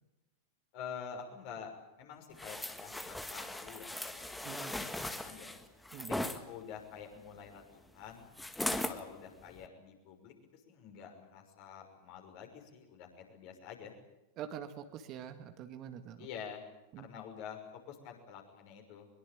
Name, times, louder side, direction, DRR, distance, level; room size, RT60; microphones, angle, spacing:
voice 1, 0.7-1.7 2.0-5.6 6.2-8.3 8.8-10.3 10.7-13.9 16.2-16.6 17.0-17.6 17.9-19.1, left 7 dB, 45° left, 3 dB, 6.0 m, -48 dB
sound 1, 2.4-6.4 8.4-9.0 9.5-9.7, left 1 dB, 5° left, 1.8 m, -38 dB
voice 2, 4.4-4.8 5.9-6.2 14.4-16.3 16.9-17.1, right 9 dB, 35° right, 8 dB, 2.0 m, -45 dB
23.5 x 22.0 x 8.8 m, 0.97 s
figure-of-eight pair, 90°, 0 cm